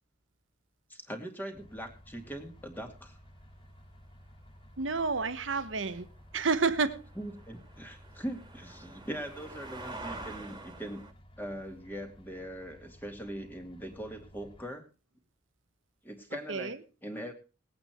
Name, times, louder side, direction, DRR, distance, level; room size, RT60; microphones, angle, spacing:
voice 1, 0.9-3.2 7.2-11.0 11.4-14.9 16.0-17.3, equal, 10° left, 4 dB, 2.3 m, -41 dB
sound 1, 1.5-14.6, equal, 30° left, 1.3 m, -55 dB
sound 2, 1.6-1.8 2.5-2.7 3.1-3.9 4.4-11.1, right 2 dB, 25° right, 2.2 m, -47 dB
voice 2, 4.8-6.1 6.3-7.0 16.5-16.8, right 4 dB, 85° right, 13 dB, 1.2 m, -29 dB
19.5 x 8.8 x 4.5 m, 0.33 s
head